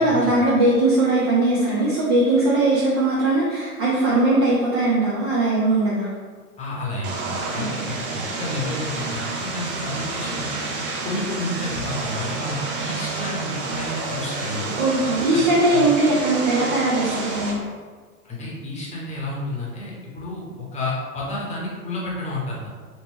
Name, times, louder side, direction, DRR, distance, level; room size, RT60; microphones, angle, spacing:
voice 1, 0.0-6.1 7.6-7.9 14.8-17.6, right 2 dB, 20° right, -6 dB, 0.3 m, -20 dB
voice 2, 6.6-7.2 7.5-10.6 11.0-14.7 15.3-15.4 15.7-15.8 18.2-22.7, left 2 dB, 15° left, -5 dB, 0.9 m, -31 dB
Vehicle, 7.0-17.5, right 3 dB, 40° right, 0.8 m, -29 dB
3.3 x 2.8 x 3.1 m, 1.5 s
figure-of-eight pair, 95°, 44 cm